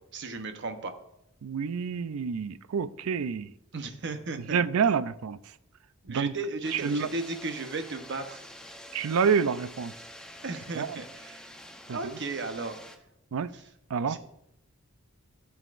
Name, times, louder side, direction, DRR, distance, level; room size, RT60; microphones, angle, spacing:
voice 1, 0.1-0.9 3.7-4.6 6.0-8.4 10.4-11.5 11.9-12.8 13.5-13.7 14.0-14.2, right 3 dB, 55° right, 0.9 m, -35 dB
voice 2, 1.4-3.5 4.5-5.4 6.1-6.3 6.7-7.1 8.9-9.9 10.7-10.9 11.9-12.0 13.3-13.5 13.9-14.2, right 6 dB, 85° right, 0.4 m, -27 dB
sound 1, 6.6-13.0, equal, 5° left, 0.7 m, -47 dB
14.0 x 7.2 x 2.5 m
head